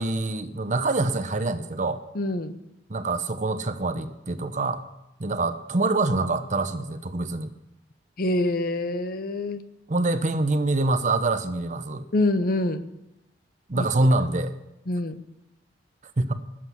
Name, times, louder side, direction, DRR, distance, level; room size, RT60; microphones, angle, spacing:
voice 1, 0.0-2.0 2.9-4.8 5.2-7.5 9.9-12.0 13.7-14.5 16.2-16.3, right 2 dB, 40° right, 10 dB, 0.8 m, -25 dB
voice 2, 2.1-2.6 8.2-9.6 12.1-12.9 13.7-13.9 14.9-15.2, left 1 dB, 50° left, 11 dB, 0.8 m, -25 dB
19.5 x 7.6 x 6.2 m, 0.91 s
head